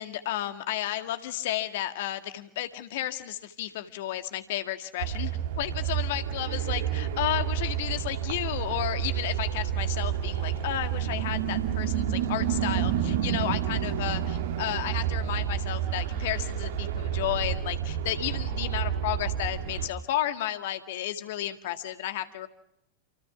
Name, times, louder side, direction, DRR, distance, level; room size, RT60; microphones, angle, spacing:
voice 1, 0.0-5.3 5.6-22.5, left 13 dB, 55° left, 8 dB, 1.9 m, -32 dB
sound 1, 5.0-19.9, right 9 dB, 60° right, 2.5 m, -29 dB
28.5 x 28.5 x 6.0 m, 0.80 s
figure-of-eight pair, 90°, 0 cm